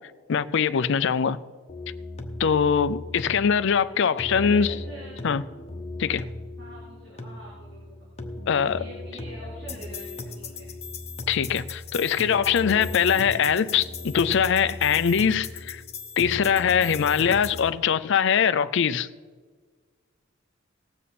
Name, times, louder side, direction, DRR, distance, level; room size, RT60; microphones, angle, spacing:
voice 1, 0.3-1.4 2.4-4.7 5.2-5.4 6.0-6.2 8.5-8.8 11.3-15.8 16.2-19.1, left 7 dB, 60° left, 0.4 m, -22 dB
sound 1, 1.7-17.7, left 2 dB, 30° left, 1.0 m, -37 dB
voice 2, 3.8-5.2 6.6-8.1 8.7-10.7, right 1 dB, 55° right, 3.9 m, -45 dB
19.0 x 7.6 x 4.2 m
head